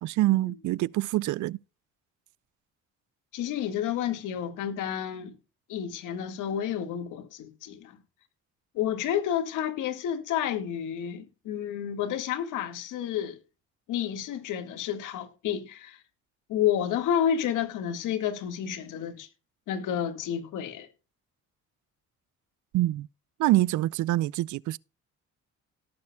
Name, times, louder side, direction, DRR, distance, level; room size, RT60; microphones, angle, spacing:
voice 1, 0.0-1.6 22.7-23.1 23.4-24.8, right 17 dB, 75° right, 0.4 m, -25 dB
voice 2, 3.3-5.3 5.7-7.9 8.7-13.4 13.9-16.0 16.5-19.3 19.7-20.9, left 9 dB, 90° left, 1.8 m, -30 dB
18.5 x 7.0 x 2.2 m
cardioid pair, 90°, 30 cm